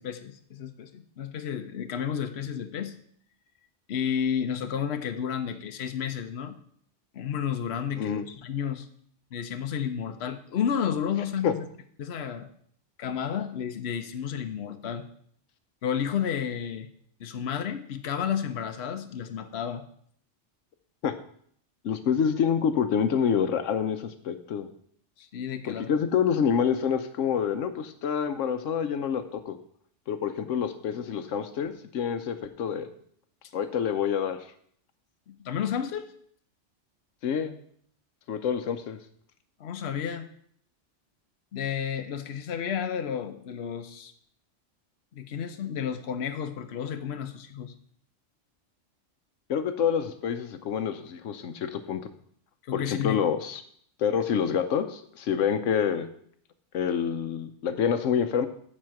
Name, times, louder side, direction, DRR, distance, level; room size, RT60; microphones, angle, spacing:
voice 1, 0.0-2.9 3.9-6.6 7.1-8.9 9.3-11.6 12.0-12.5 13.0-15.1 15.8-16.9 17.2-19.8 25.2-25.9 35.3-36.1 39.6-40.3 41.5-44.1 45.1-47.7 52.7-53.2, left 8 dB, 60° left, 8 dB, 1.0 m, -31 dB
voice 2, 21.8-24.7 25.6-29.6 30.1-32.9 33.5-34.4 37.2-37.6 38.3-39.0 49.5-52.0 52.7-53.6 54.0-56.1 56.7-58.5, left 7 dB, 85° left, 10 dB, 1.1 m, -27 dB
10.5 x 4.4 x 7.6 m, 0.63 s
omnidirectional pair, 1.3 m